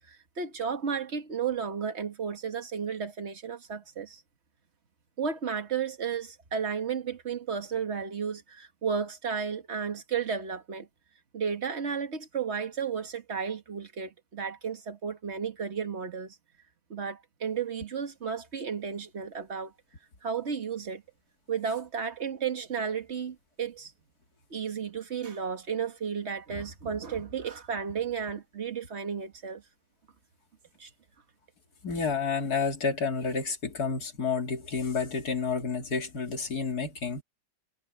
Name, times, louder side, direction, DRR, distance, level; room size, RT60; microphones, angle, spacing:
voice 1, 0.1-4.2 5.2-10.9 11.3-16.4 16.9-19.7 20.2-21.0 21.5-23.9 24.5-29.6 30.8-30.9, right 6 dB, 40° right, 1.8 m, -33 dB
voice 2, 31.8-37.2, left 5 dB, 60° left, 3.2 m, -30 dB
omnidirectional pair, 1.9 m